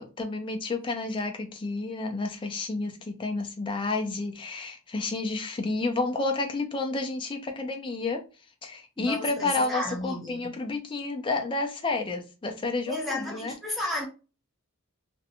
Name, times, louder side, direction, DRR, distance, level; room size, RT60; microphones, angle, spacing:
voice 1, 0.0-8.2 8.6-13.5, left 3 dB, 20° left, 0.4 m, -30 dB
voice 2, 9.0-10.5 12.9-14.1, left 1 dB, ahead, 0.7 m, -33 dB
2.5 x 2.1 x 2.8 m
head